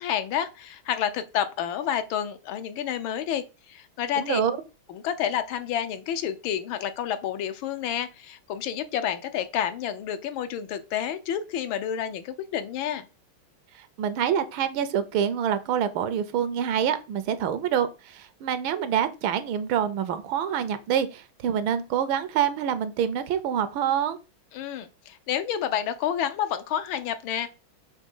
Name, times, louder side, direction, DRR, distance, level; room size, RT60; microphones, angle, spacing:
voice 1, 0.0-4.4 4.9-13.1 24.5-27.5, left 9 dB, 75° left, 1.4 m, -29 dB
voice 2, 4.2-4.6 13.7-24.2, right 9 dB, 75° right, 1.4 m, -26 dB
6.5 x 3.1 x 5.3 m
omnidirectional pair, 2.3 m